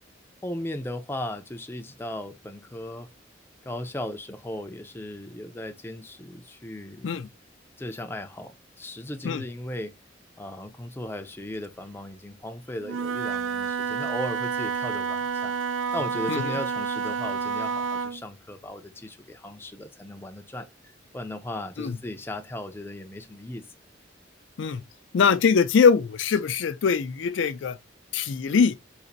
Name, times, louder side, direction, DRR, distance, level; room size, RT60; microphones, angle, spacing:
voice 1, 0.4-3.1 3.6-7.1 7.8-9.9 10.4-15.5 15.9-20.7 21.1-23.6, left 1 dB, 10° left, 0.4 m, -36 dB
Wind instrument woodwind instrument, 12.8-18.2, right 6 dB, 80° right, 0.3 m, -29 dB
voice 2, 25.1-27.8 28.1-28.8, left 6 dB, 75° left, 0.4 m, -22 dB
4.1 x 2.5 x 2.5 m
head